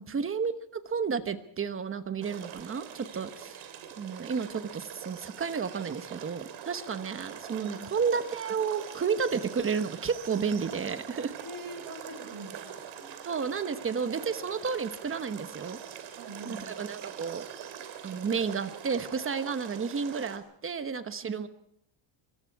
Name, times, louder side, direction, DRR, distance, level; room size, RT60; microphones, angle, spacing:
voice 1, 0.0-3.6 4.0-11.3 13.2-15.8 16.4-17.5 18.0-21.5, right 6 dB, 25° right, 10 dB, 1.1 m, -32 dB
sound 1, 2.2-20.4, right 9 dB, 65° right, 3.1 m, -44 dB
voice 2, 11.4-12.8 16.2-16.9 21.2-21.3, right 2 dB, 45° right, 3 dB, 7.3 m, -43 dB
24.0 x 23.0 x 4.7 m, 0.71 s
cardioid pair, 155°, 49 cm